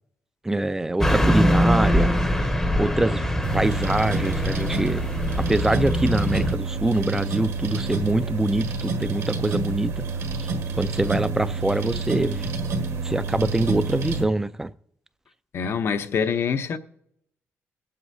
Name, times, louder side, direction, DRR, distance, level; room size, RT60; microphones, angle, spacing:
voice 1, 0.4-2.2 2.8-5.1 5.4-10.0 10.4-10.5 10.8-12.5 13.0-14.7, right 2 dB, 10° right, 0.4 m, -24 dB
Car passing by / Truck, 1.0-6.5, equal, 10° left, 0.8 m, -23 dB
sound 1, 3.4-14.2, right 4 dB, 75° right, 1.6 m, -29 dB
voice 2, 15.5-16.8, left 6 dB, 55° left, 0.8 m, -25 dB
21.5 x 7.8 x 2.7 m
cardioid pair, 130°, 5 cm